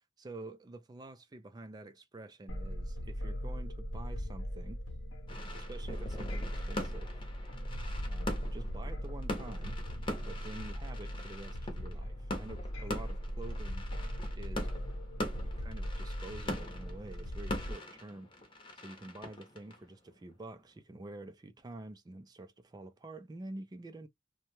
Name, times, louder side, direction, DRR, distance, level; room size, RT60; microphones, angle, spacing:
voice 1, 0.2-4.8 5.5-7.2 8.0-9.8 10.3-13.9 14.3-14.7 15.4-18.3 18.8-24.1, right 2 dB, 20° right, 0.3 m, -48 dB
sound 1, 2.5-17.7, equal, 85° left, 0.8 m, -39 dB
sound 2, 5.3-20.6, left 1 dB, 25° left, 0.8 m, -43 dB
2.7 x 2.2 x 2.9 m
head